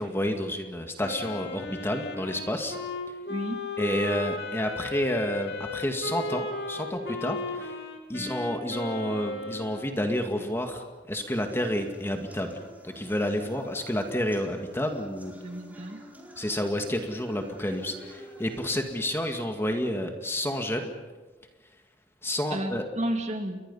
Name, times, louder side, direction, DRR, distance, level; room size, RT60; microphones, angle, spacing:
voice 1, 0.0-2.8 3.8-7.7 8.1-15.3 16.4-20.9 22.2-22.8, left 1 dB, 15° left, 4 dB, 2.0 m, -30 dB
Wind instrument woodwind instrument, 1.0-9.9, left 2 dB, 70° left, 2.9 m, -35 dB
voice 2, 3.3-3.7 8.1-8.3 15.4-16.0 22.5-23.6, right 1 dB, 40° right, 4 dB, 2.8 m, -32 dB
sound 1, 11.2-19.2, equal, 10° right, 4.5 m, -49 dB
30.0 x 23.0 x 5.6 m, 1.3 s
head